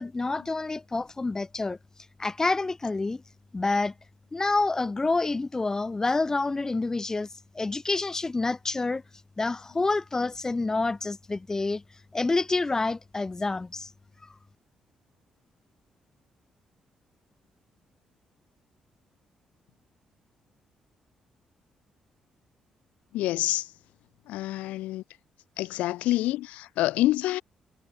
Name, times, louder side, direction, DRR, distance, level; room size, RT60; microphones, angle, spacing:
voice 1, 0.0-1.8 2.2-3.2 3.5-3.9 4.3-7.3 7.5-9.0 9.4-11.8 12.1-13.9, left 3 dB, 25° left, 5.0 m, -28 dB
voice 2, 23.1-23.7 24.3-25.0 25.6-27.4, left 16 dB, 90° left, 4.1 m, -27 dB
supercardioid pair, 70°, 2 cm